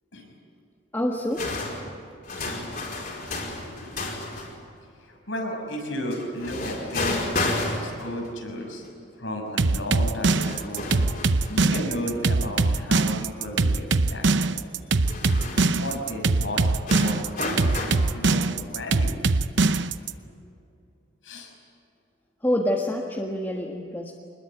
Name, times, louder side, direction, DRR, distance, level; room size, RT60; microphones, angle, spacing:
voice 1, 0.9-1.4 22.4-24.1, left 1 dB, 10° left, 0 dB, 1.5 m, -26 dB
sound 1, 1.3-4.6 6.1-8.3 8.8-8.9 10.0-10.1 10.3-12.6 13.0-13.1 14.9-16.0 16.9-18.0, left 2 dB, 45° left, 4.7 m, -32 dB
voice 2, 5.0-8.8 9.2-10.9 11.5-14.6 15.7-19.2 20.1-20.2 21.2-21.5, equal, 80° left, 2 dB, 6.4 m, -34 dB
sound 2, 9.6-20.1, right 3 dB, 70° right, 0.8 m, -22 dB
26.0 x 21.0 x 9.0 m, 2.5 s
head